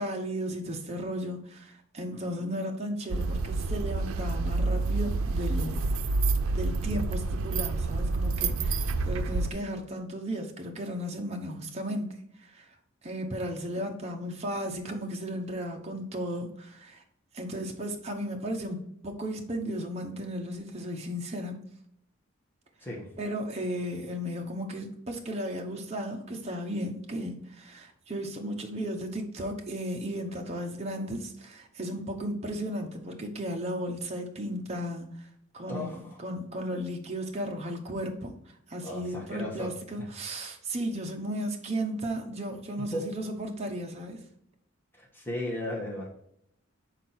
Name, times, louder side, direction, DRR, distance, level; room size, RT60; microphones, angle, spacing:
voice 1, 0.0-6.2 6.5-12.7 13.0-17.0 17.3-21.6 23.2-35.3 35.5-44.2, equal, 30° right, 0.9 m, -35 dB
sound 1, 3.1-9.5, right 3 dB, 85° right, 0.5 m, -28 dB
voice 2, 35.7-36.2 38.8-40.1 42.8-43.1 44.9-46.2, left 1 dB, 10° left, 1.5 m, -36 dB
6.0 x 4.6 x 4.4 m
head